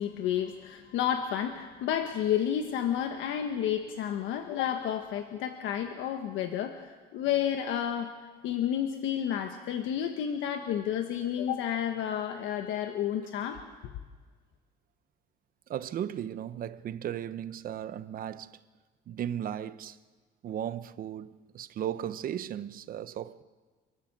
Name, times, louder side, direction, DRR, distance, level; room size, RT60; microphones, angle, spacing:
voice 1, 0.0-8.1 8.4-13.6, left 9 dB, 80° left, 1.4 m, -31 dB
voice 2, 15.7-18.6 19.1-20.0 20.4-23.4, right 10 dB, 45° right, 0.8 m, -36 dB
29.5 x 13.0 x 7.5 m
cardioid pair, 145°, 20 cm